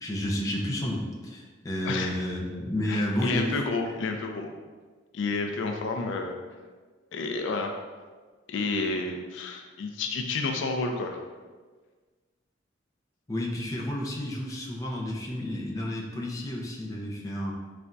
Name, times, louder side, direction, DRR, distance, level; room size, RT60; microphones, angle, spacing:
voice 1, 0.0-3.5 13.3-17.5, left 1 dB, 20° left, -3 dB, 0.5 m, -31 dB
voice 2, 2.9-4.5 5.1-6.4 7.1-7.7 8.5-11.2, left 3 dB, 75° left, 4 dB, 0.3 m, -30 dB
4.1 x 3.4 x 2.5 m, 1.4 s
head